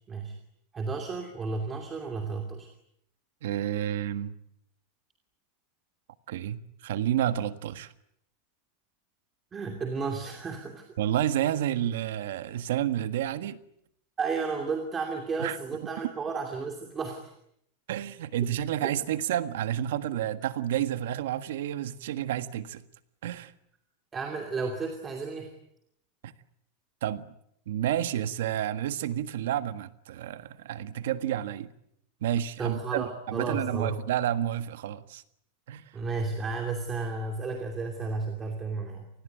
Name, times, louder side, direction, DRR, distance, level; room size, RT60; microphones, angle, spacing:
voice 1, 0.7-2.7 9.5-10.8 14.2-17.3 18.8-18.9 24.1-25.5 32.6-34.0 35.9-39.1, right 4 dB, 15° right, 2.7 m, -33 dB
voice 2, 3.4-4.3 6.3-7.9 11.0-13.6 15.4-15.6 17.9-22.8 23.2-23.5 26.2-26.3 27.0-27.3 27.7-31.7 32.2-35.2 35.7-35.8, right 11 dB, 75° right, 1.6 m, -30 dB
28.5 x 20.5 x 9.2 m
supercardioid pair, 175°, 0 cm